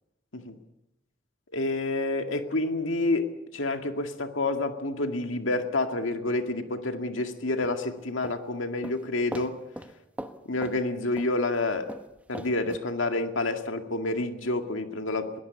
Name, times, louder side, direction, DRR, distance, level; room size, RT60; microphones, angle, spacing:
voice 1, 1.5-9.6 10.5-11.9 12.3-15.4, left 2 dB, 75° left, 6 dB, 2.1 m, -28 dB
sound 1, 7.6-8.4 8.8-9.0 9.3-9.5 9.8-9.9 10.2-10.4 10.6-10.8 11.2-11.3 11.9-12.8, right 1 dB, 5° right, 1.2 m, -39 dB
21.5 x 17.5 x 8.3 m, 0.91 s
head